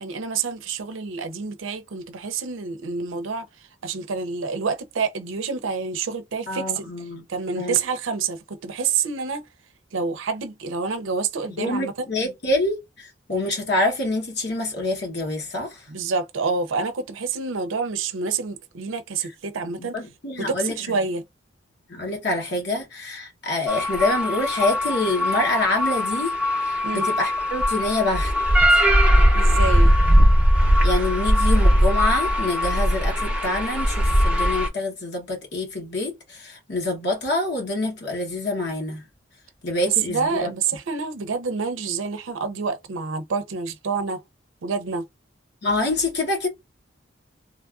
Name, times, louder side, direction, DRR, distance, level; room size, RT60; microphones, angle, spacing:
voice 1, 0.0-3.5 3.8-6.9 7.3-9.4 9.9-12.1 15.9-20.0 20.4-21.2 26.8-27.1 29.3-29.9 39.9-44.2 44.6-45.0, right 5 dB, 90° right, 0.5 m, -27 dB
voice 2, 6.5-7.2 7.5-7.8 11.6-15.8 19.8-21.0 21.9-28.3 28.7-28.8 30.8-39.0 39.6-40.5 45.6-46.5, left 2 dB, 60° left, 0.9 m, -26 dB
sound 1, 23.7-34.7, equal, 5° right, 0.7 m, -19 dB
3.1 x 2.3 x 2.4 m
head